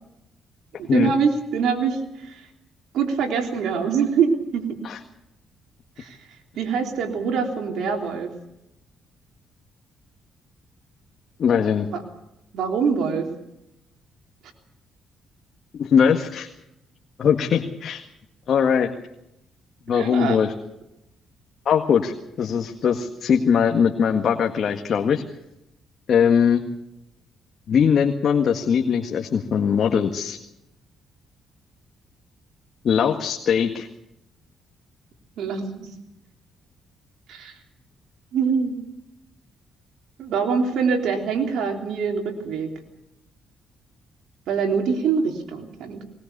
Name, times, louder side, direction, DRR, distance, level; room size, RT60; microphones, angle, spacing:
voice 1, 0.8-2.4 2.9-4.6 6.0-6.2 6.5-8.3 11.9-12.0 12.5-13.3 19.9-20.4 35.4-35.9 37.3-37.5 38.3-38.8 40.2-42.7 44.5-46.0, right 6 dB, 80° right, 2 dB, 3.4 m, -24 dB
voice 2, 11.4-11.9 15.8-16.5 17.2-18.0 18.5-18.9 19.9-20.5 21.7-22.1 22.4-25.2 26.1-26.6 27.7-30.4 32.8-33.9, left 7 dB, 60° left, 3 dB, 1.8 m, -20 dB
20.5 x 20.0 x 6.8 m, 0.86 s
cardioid pair, 90°, 0 cm